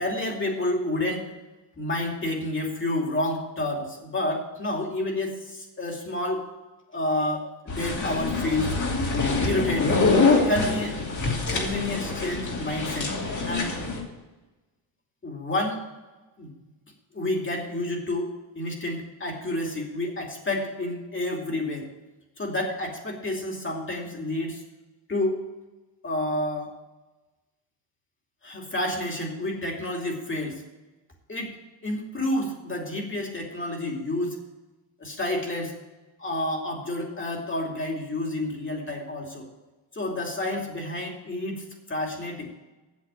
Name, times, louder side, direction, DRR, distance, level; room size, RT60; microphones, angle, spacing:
voice 1, 0.0-1.3 1.8-6.5 6.9-8.8 9.4-10.0 10.5-11.0 11.5-13.1 13.5-13.8 15.2-15.8 16.4-16.5 17.1-21.9 22.4-24.6 25.1-25.4 26.0-26.7 28.4-30.6 31.3-31.6 31.8-34.4 35.0-35.7 36.2-39.5 39.9-42.5, left 1 dB, 30° left, 1 dB, 2.7 m, -29 dB
sound 1, 7.7-14.0, left 3 dB, 45° left, 2.7 m, -25 dB
8.4 x 7.4 x 8.2 m, 1.1 s
cardioid pair, 100°, 42 cm